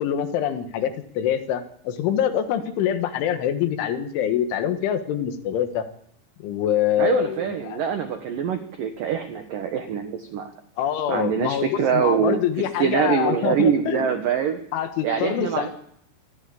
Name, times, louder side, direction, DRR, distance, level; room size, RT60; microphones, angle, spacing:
voice 1, 0.0-5.9 6.4-7.8 10.8-14.2 14.7-15.7, left 10 dB, 80° left, 8 dB, 3.9 m, -25 dB
voice 2, 7.0-10.5 11.1-14.6 15.0-15.7, right 7 dB, 65° right, 6 dB, 2.4 m, -24 dB
25.5 x 13.0 x 8.4 m, 0.71 s
omnidirectional pair, 5.5 m